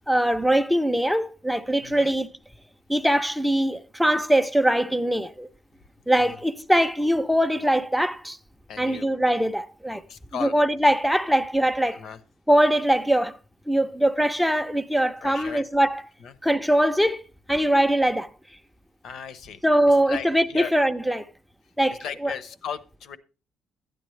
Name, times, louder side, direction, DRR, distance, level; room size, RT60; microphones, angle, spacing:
voice 1, 0.1-2.3 2.9-5.5 6.1-8.4 8.8-10.0 10.4-12.0 12.5-13.4 13.7-16.0 16.4-17.2 17.5-18.3 19.6-21.3 21.8-22.3, right 1 dB, ahead, 0.5 m, -22 dB
voice 2, 1.8-2.2 6.3-6.4 8.7-9.1 10.1-10.5 11.9-12.2 15.2-15.7 16.2-16.4 19.0-19.6 19.9-20.7 21.9-23.2, left 7 dB, 55° left, 0.8 m, -36 dB
12.0 x 9.2 x 3.2 m
cardioid pair, 155°, 0 cm